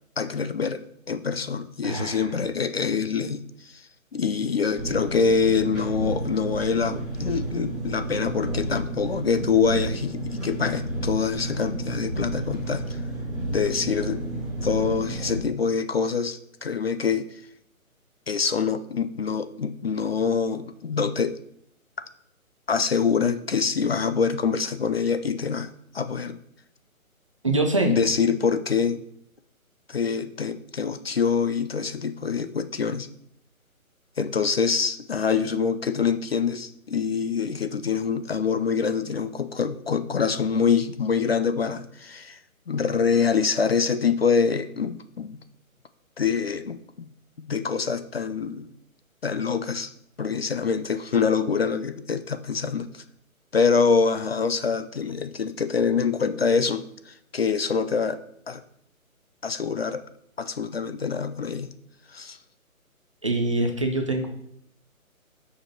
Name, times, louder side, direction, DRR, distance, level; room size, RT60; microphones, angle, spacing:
voice 1, 0.2-0.8 1.1-13.0 13.5-14.2 14.6-17.4 18.3-21.4 22.7-25.7 25.9-26.4 27.4-29.0 29.9-33.1 34.2-42.4 42.7-45.4 46.2-47.1 47.4-48.7 49.2-49.9 50.2-53.0 53.5-58.2 58.5-58.6 59.4-60.0 60.4-61.7 62.1-62.4, left 5 dB, 45° left, 11 dB, 0.5 m, -25 dB
voice 2, 1.8-2.3 27.4-28.0 63.2-64.3, right 2 dB, 25° right, 4 dB, 0.6 m, -24 dB
Engine, 4.8-15.4, right 1 dB, ahead, 1.3 m, -31 dB
6.6 x 5.0 x 6.0 m, 0.71 s
figure-of-eight pair, 150°, 43 cm